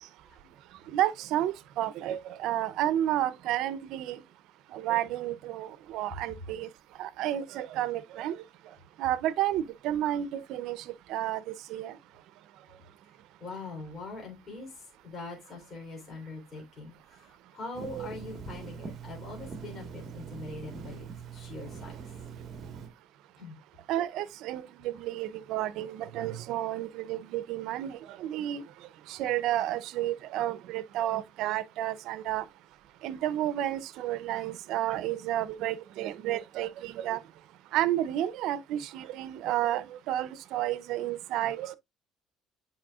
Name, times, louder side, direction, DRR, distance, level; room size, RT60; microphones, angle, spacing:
voice 1, 0.9-4.2 4.7-6.7 7.0-8.4 9.0-11.4 11.7-12.0 23.9-28.6 29.1-32.4 33.0-37.2 37.7-41.8, right 13 dB, 75° right, 0.6 m, -31 dB
voice 2, 13.4-22.1 23.4-23.6, left 3 dB, 35° left, 3.5 m, -43 dB
Telephone, 17.7-22.9, right 7 dB, 35° right, 1.5 m, -42 dB
8.7 x 5.5 x 2.4 m
cardioid pair, 120°, 0 cm